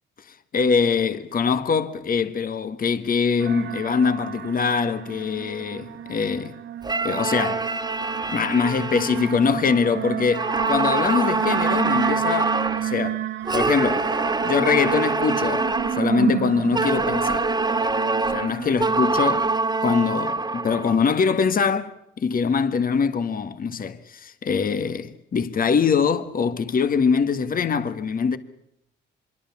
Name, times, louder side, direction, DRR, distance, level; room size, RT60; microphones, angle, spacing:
voice 1, 0.5-6.5 7.0-7.7 8.3-13.2 13.5-14.1 14.4-17.5 18.3-19.5 19.8-28.4, left 5 dB, 45° left, 1.6 m, -23 dB
sound 1, 3.4-18.9, right 11 dB, 65° right, 1.8 m, -31 dB
sound 2, 6.8-9.9 10.3-12.9 13.5-16.1 16.7-21.0, right 3 dB, 20° right, 2.0 m, -25 dB
26.0 x 23.0 x 7.2 m
cardioid pair, 90°, 20 cm